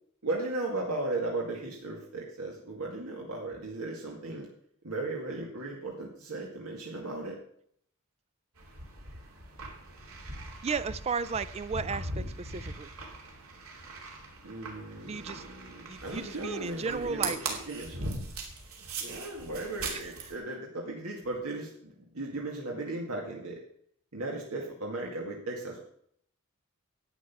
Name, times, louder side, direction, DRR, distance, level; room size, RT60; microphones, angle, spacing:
voice 1, 0.2-4.5 4.8-7.4 14.4-18.0 19.0-23.6 24.1-25.8, right 2 dB, 85° right, -1 dB, 2.1 m, -36 dB
sound 1, 8.6-20.4, right 3 dB, 70° right, 2.8 m, -40 dB
voice 2, 10.6-12.9 15.1-15.4 15.9-17.4, right 5 dB, 30° right, 15 dB, 0.4 m, -34 dB
11.0 x 8.8 x 5.9 m, 0.66 s
head